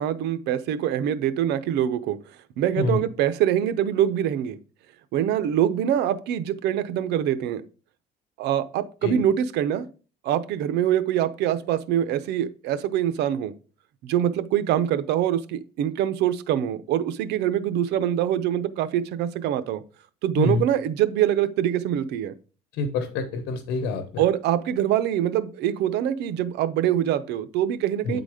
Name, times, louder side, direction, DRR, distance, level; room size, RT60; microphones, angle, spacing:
voice 1, 0.0-2.2 2.6-4.6 5.1-7.6 8.4-9.9 10.2-13.5 14.0-19.8 20.2-22.3 24.2-28.2, right 10 dB, 85° right, 0.7 m, -24 dB
voice 2, 22.8-24.2 28.0-28.2, left 4 dB, 85° left, 1.0 m, -26 dB
9.0 x 4.0 x 4.9 m
cardioid pair, 110°, 17 cm